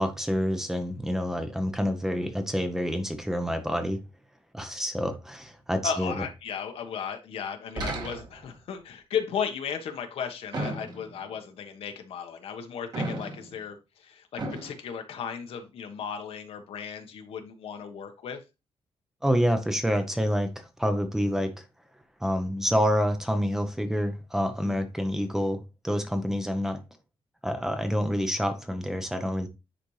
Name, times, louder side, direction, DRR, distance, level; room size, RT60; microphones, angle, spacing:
voice 1, 0.0-4.0 4.5-6.1 19.2-21.6 22.2-26.8 27.4-29.5, equal, 5° right, 0.8 m, -27 dB
voice 2, 5.8-18.4, left 7 dB, 70° left, 1.3 m, -35 dB
sound 1, 7.8-8.6 10.5-11.3 12.9-13.6 14.4-14.7, right 2 dB, 45° right, 2.0 m, -34 dB
10.0 x 4.2 x 3.3 m
wide cardioid pair, 155°, 10 cm